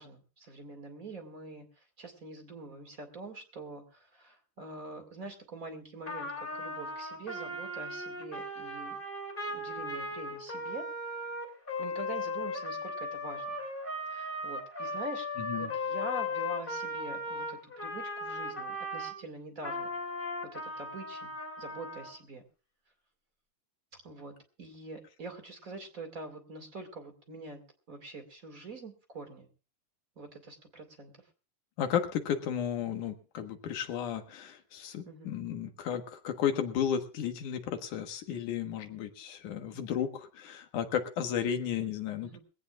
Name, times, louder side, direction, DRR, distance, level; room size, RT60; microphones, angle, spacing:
voice 1, 0.0-9.0 9.5-10.8 11.8-13.6 14.1-15.3 15.6-19.9 20.5-21.3 21.6-22.4 24.0-27.6 27.9-29.5 30.2-31.1 35.1-35.3 42.2-42.4, right 2 dB, 30° right, 5 dB, 2.2 m, -45 dB
Trumpet, 6.1-19.1 19.6-22.1, left 2 dB, 15° left, 2.7 m, -37 dB
voice 2, 15.4-15.7 31.8-42.4, left 8 dB, 75° left, 6 dB, 2.8 m, -33 dB
21.5 x 16.5 x 2.4 m, 0.34 s
omnidirectional pair, 3.7 m